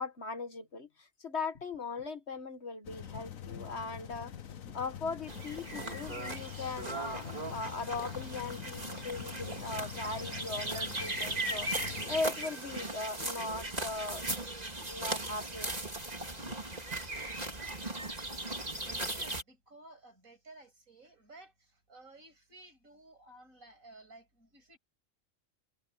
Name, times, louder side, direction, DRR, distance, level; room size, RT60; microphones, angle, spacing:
voice 1, 0.0-4.3 4.7-11.7 12.1-14.2 14.8-15.9 16.4-16.6, left 3 dB, 55° left, 2.2 m, -39 dB
sound 1, 2.8-12.2, left 9 dB, 80° left, 1.5 m, -45 dB
sound 2, 5.3-19.4, right 2 dB, 30° right, 3.0 m, -38 dB
voice 2, 18.3-24.8, right 2 dB, 90° right, 7.6 m, -55 dB
omnidirectional pair, 1.4 m